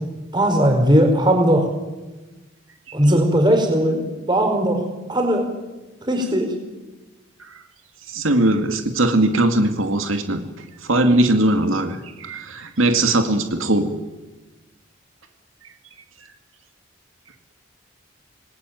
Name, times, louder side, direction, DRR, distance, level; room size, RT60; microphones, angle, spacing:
voice 1, 0.3-1.7 2.9-4.0 4.3-4.8 5.1-5.4 6.1-6.5, equal, 20° right, 4 dB, 4.9 m, -17 dB
voice 2, 8.1-13.9, right 1 dB, 85° right, 6 dB, 2.4 m, -20 dB
26.5 x 20.5 x 9.4 m, 1.2 s
head